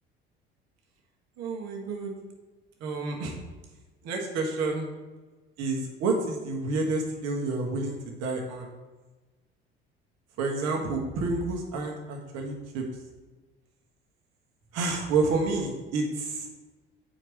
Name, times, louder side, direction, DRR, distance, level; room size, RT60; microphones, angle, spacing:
voice 1, 1.4-2.1 2.8-3.4 4.0-4.9 5.6-8.7 10.4-12.8 14.7-16.5, right 3 dB, 55° right, 0 dB, 1.5 m, -29 dB
9.0 x 4.6 x 3.1 m, 1.2 s
figure-of-eight pair, 60°, 31 cm